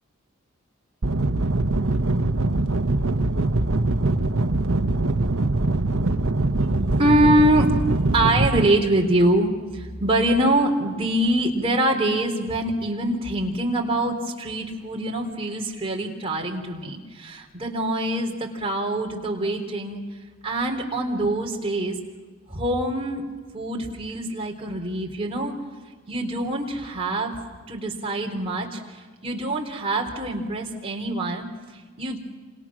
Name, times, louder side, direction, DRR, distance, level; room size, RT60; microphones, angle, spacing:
sound 1, 1.0-8.7, right 2 dB, 75° right, 1.1 m, -22 dB
voice 1, 6.9-7.7 8.1-20.0 20.4-22.0 22.5-23.2 23.5-25.5 26.1-27.4 27.7-31.5 32.0-32.2, right 1 dB, 25° right, 1 dB, 3.7 m, -24 dB
29.5 x 27.5 x 6.2 m, 1.5 s
head